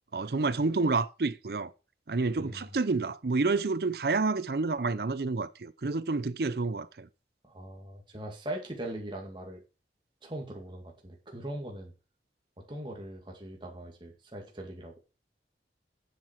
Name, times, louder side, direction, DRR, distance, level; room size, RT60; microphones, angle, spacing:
voice 1, 0.1-1.7 2.1-7.1, right 3 dB, 60° right, 0.6 m, -29 dB
voice 2, 7.4-9.6 10.2-11.9 12.6-15.0, right 1 dB, 25° right, 2.2 m, -40 dB
9.2 x 7.7 x 4.5 m
head